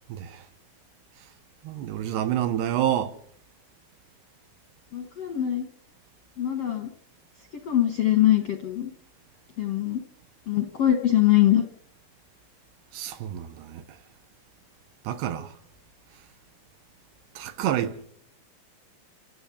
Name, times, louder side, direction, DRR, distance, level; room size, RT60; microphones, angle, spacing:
voice 1, 0.1-0.5 1.6-3.2 12.9-14.0 15.0-15.6 17.4-18.1, right 11 dB, 75° right, 3.2 m, -28 dB
voice 2, 4.9-5.7 6.4-6.9 7.6-8.9 9.6-10.0 10.5-11.6, left 12 dB, 65° left, 1.6 m, -22 dB
28.0 x 12.5 x 8.5 m
omnidirectional pair, 4.8 m